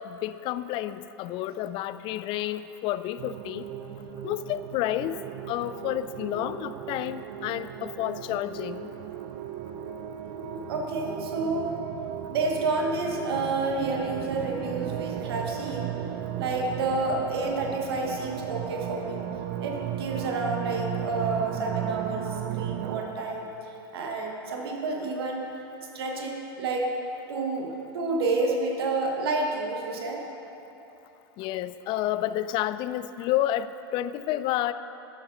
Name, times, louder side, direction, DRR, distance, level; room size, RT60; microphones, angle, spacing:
voice 1, 0.0-3.7 4.2-5.2 5.5-8.9 31.4-34.7, left 13 dB, 40° left, 14 dB, 0.3 m, -30 dB
sound 1, 3.2-23.0, right 11 dB, 50° right, 0.5 m, -35 dB
voice 2, 10.3-11.8 12.3-15.9 16.3-19.2 19.6-25.4 25.9-26.9 27.3-30.2, right 3 dB, 70° right, 1 dB, 1.3 m, -29 dB
12.0 x 7.0 x 4.0 m, 2.9 s
hypercardioid pair, 95°, 13 cm